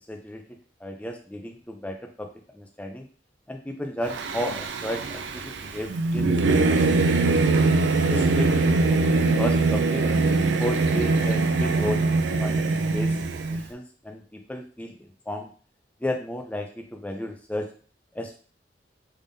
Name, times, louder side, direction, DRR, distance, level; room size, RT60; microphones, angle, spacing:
voice 1, 0.1-0.4 0.8-2.3 2.5-3.0 3.5-6.3 6.7-6.8 7.2-7.6 8.1-10.0 10.6-13.1 13.5-14.9 15.3-15.5 16.0-17.7 18.2-18.4, left 1 dB, 10° left, 3 dB, 0.5 m, -33 dB
Singing / Musical instrument, 4.1-13.6, right 3 dB, 75° right, 0.4 m, -22 dB
3.6 x 3.4 x 2.6 m, 0.41 s
head